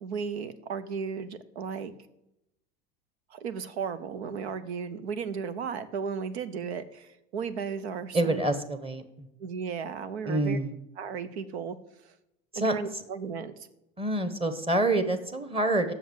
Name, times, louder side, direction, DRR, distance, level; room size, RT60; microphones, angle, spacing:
voice 1, 0.0-1.9 3.3-8.4 9.4-10.6 11.0-11.8 12.5-13.5, right 6 dB, 85° right, 13 dB, 0.9 m, -35 dB
voice 2, 8.1-9.3 10.2-10.7 12.5-12.7 14.0-15.9, right 2 dB, 15° right, 9 dB, 1.1 m, -27 dB
7.8 x 6.4 x 7.9 m, 0.87 s
hypercardioid pair, 90°, 32 cm